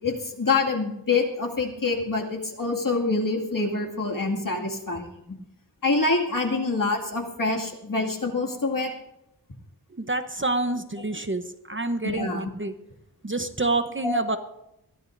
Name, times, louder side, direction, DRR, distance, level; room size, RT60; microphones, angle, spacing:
voice 1, 0.0-5.1 5.8-8.9 12.0-12.4 14.0-14.2, left 3 dB, 50° left, 1 dB, 2.3 m, -26 dB
voice 2, 9.9-12.7 13.2-14.4, right 2 dB, 30° right, 8 dB, 0.9 m, -28 dB
21.5 x 15.0 x 2.6 m, 0.82 s
wide cardioid pair, 65°, 41 cm